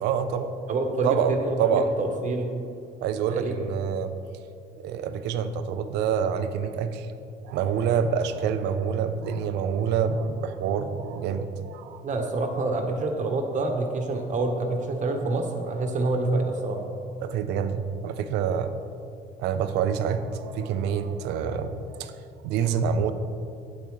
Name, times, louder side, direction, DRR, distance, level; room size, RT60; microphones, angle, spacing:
voice 1, 0.0-0.6 1.0-1.3 1.6-1.9 3.0-4.1 4.8-7.1 7.4-12.0 17.2-18.7 19.4-22.1 22.4-23.1, right 7 dB, 85° right, 10 dB, 0.5 m, -27 dB
voice 2, 0.7-2.5 3.3-3.5 12.0-16.8, right 2 dB, 45° right, 4 dB, 1.1 m, -27 dB
8.5 x 8.1 x 3.2 m, 2.5 s
cardioid pair, 110°, 17 cm